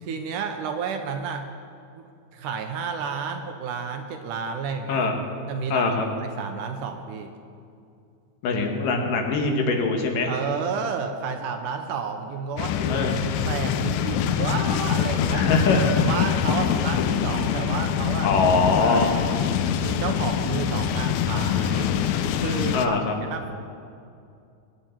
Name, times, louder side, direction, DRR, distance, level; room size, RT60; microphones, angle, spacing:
voice 1, 0.0-1.5 2.0-2.1 2.3-5.1 5.5-5.9 6.2-7.3 10.2-13.1 13.5-15.5 15.9-18.3 18.8-19.2 19.8-21.9 22.4-23.0 23.3-23.5, right 6 dB, 75° right, 6 dB, 2.2 m, -31 dB
voice 2, 5.7-6.0 8.4-10.3 12.9-13.1 15.3-15.9 18.2-19.1 22.7-23.1, left 4 dB, 75° left, 3 dB, 2.8 m, -22 dB
sound 1, 12.6-22.9, left 9 dB, 90° left, 1.6 m, -24 dB
22.5 x 9.1 x 4.5 m, 2.5 s
omnidirectional pair, 4.0 m